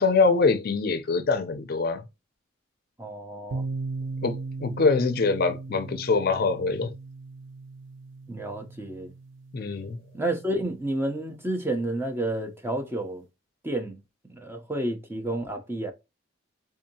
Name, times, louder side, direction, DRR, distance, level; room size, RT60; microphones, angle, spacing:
voice 1, 0.0-2.0 4.2-6.9 9.5-10.0, left 4 dB, 50° left, 0.5 m, -24 dB
voice 2, 3.0-3.6 8.3-9.1 10.1-13.2 13.6-14.0 14.3-15.9, right 1 dB, 10° right, 0.6 m, -30 dB
sound 1, 3.5-11.2, right 3 dB, 70° right, 0.4 m, -38 dB
3.6 x 2.7 x 2.7 m
head